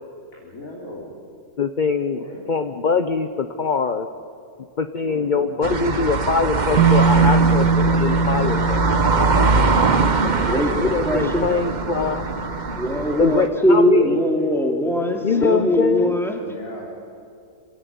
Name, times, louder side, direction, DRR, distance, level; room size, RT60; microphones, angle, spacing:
voice 1, 0.4-1.1 2.1-2.5 4.9-5.3 7.2-7.3 12.5-13.2 16.4-17.1, left 1 dB, 60° left, -4 dB, 4.0 m, -39 dB
voice 2, 1.6-4.1 4.8-8.9 10.8-12.3 13.2-14.1 15.2-16.2, left 5 dB, 40° left, 9 dB, 0.8 m, -23 dB
sound 1, 5.6-13.5, right 4 dB, 35° right, 1.0 m, -22 dB
Bass guitar, 6.8-12.8, right 4 dB, 85° right, 1.9 m, -22 dB
voice 3, 10.2-11.7 12.8-16.4, equal, ahead, 2 dB, 2.7 m, -21 dB
27.5 x 17.0 x 9.5 m, 2.4 s
omnidirectional pair, 1.6 m